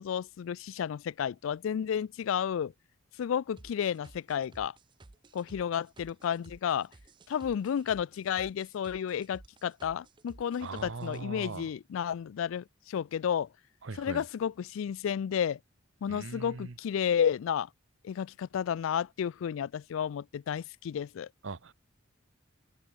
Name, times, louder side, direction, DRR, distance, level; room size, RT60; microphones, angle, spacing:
voice 1, 0.0-2.7 3.2-4.7 5.3-6.9 7.3-13.5 13.9-15.6 16.0-17.7 18.0-21.3, left 8 dB, 75° left, 0.3 m, -32 dB
sound 1, 3.6-11.2, right 2 dB, 25° right, 0.6 m, -54 dB
voice 2, 10.6-11.7 13.8-14.2 16.1-16.8 21.4-21.7, right 4 dB, 65° right, 0.8 m, -40 dB
head